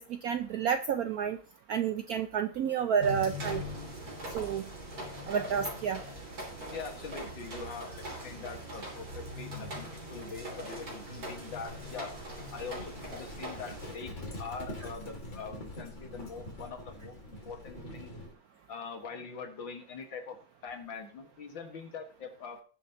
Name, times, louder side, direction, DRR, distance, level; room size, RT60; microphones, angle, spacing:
voice 1, 0.0-1.4 1.7-3.6 4.3-4.7 5.3-6.0, right 7 dB, 75° right, 9 dB, 0.8 m, -30 dB
sound 1, 3.0-13.9, equal, 45° right, 3.6 m, -41 dB
voice 2, 6.7-12.1 12.5-18.1 18.7-22.6, left 5 dB, 70° left, 5 dB, 2.4 m, -43 dB
Livestock farm animals working animals, 11.7-18.3, left 1 dB, 35° left, 2.9 m, -45 dB
19.0 x 7.3 x 2.9 m, 0.39 s
omnidirectional pair, 2.2 m